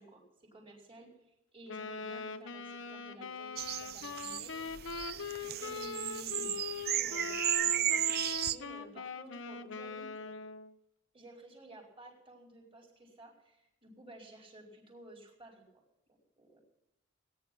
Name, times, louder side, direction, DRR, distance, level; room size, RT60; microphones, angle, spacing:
voice 1, 0.0-4.6 5.6-6.5 6.9-10.4 11.1-15.8 16.4-16.6, right 1 dB, 25° right, -2 dB, 4.7 m, -53 dB
Wind instrument woodwind instrument, 1.7-10.7, left 5 dB, 65° left, 0.9 m, -42 dB
sound 1, 3.6-8.6, right 11 dB, 50° right, 0.6 m, -34 dB
19.0 x 10.5 x 6.1 m, 0.88 s
head